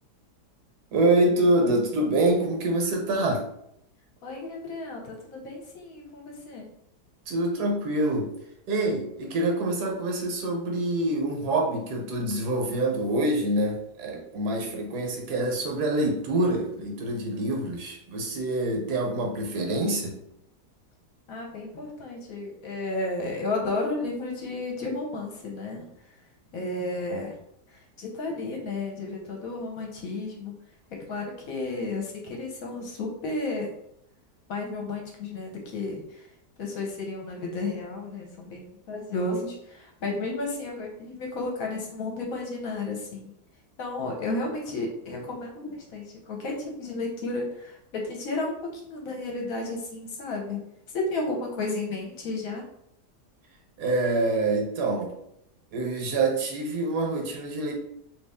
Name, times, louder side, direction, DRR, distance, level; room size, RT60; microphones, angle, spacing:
voice 1, 0.9-3.4 7.3-8.3 8.7-20.1 53.8-55.1 55.7-57.7, right 2 dB, 75° right, 1 dB, 1.3 m, -26 dB
voice 2, 4.2-6.7 21.3-27.4 27.7-30.5 31.0-33.7 34.5-36.3 36.6-43.3 43.8-50.6 50.9-52.6, left 2 dB, 65° left, 0 dB, 1.0 m, -33 dB
3.0 x 2.7 x 3.4 m, 0.76 s
omnidirectional pair, 1.8 m